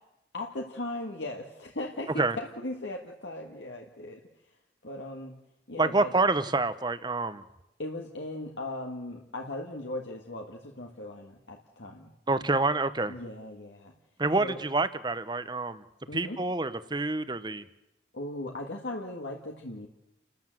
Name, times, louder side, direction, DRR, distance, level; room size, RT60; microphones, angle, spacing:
voice 1, 0.3-4.2 4.8-5.3 5.7-6.1 7.8-12.1 13.1-13.9 14.4-14.6 16.1-16.4 18.1-19.9, left 1 dB, 75° left, 1 dB, 1.8 m, -38 dB
voice 2, 5.8-7.4 12.3-13.2 14.2-15.8 16.1-17.7, right 3 dB, 25° right, 13 dB, 0.9 m, -27 dB
29.0 x 13.5 x 7.8 m, 0.91 s
head